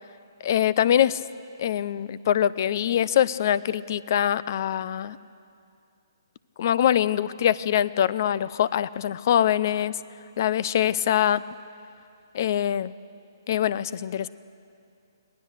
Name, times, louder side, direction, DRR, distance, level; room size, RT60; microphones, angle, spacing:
voice 1, 0.4-1.2 1.6-5.2 6.6-10.0 10.4-11.4 12.3-12.9 13.5-14.3, left 10 dB, 50° left, 19 dB, 0.5 m, -23 dB
24.5 x 18.0 x 6.5 m, 2.5 s
hypercardioid pair, 145°, 2 cm